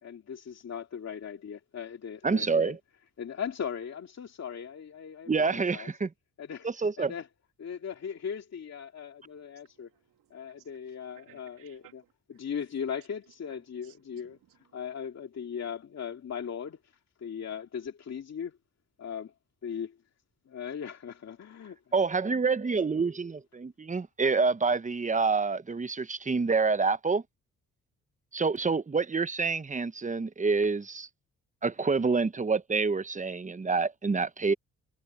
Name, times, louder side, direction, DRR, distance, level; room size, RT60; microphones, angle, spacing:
voice 1, 0.0-2.8 3.2-5.9 6.4-6.7 7.0-7.3 7.6-9.9 10.3-11.8 12.4-14.3 14.7-16.9 17.2-18.5 19.0-19.3 19.6-20.0 20.5-21.7 22.2-22.3, left 7 dB, 55° left, 2.5 m, -38 dB
voice 2, 2.2-2.8 5.3-6.1 6.6-7.1 21.9-27.2 28.3-31.1 31.6-34.5, right 4 dB, 25° right, 1.0 m, -27 dB
voice 3, 9.2-12.5 13.2-15.1, right 14 dB, 85° right, 3.0 m, -62 dB
supercardioid pair, 60°, 32 cm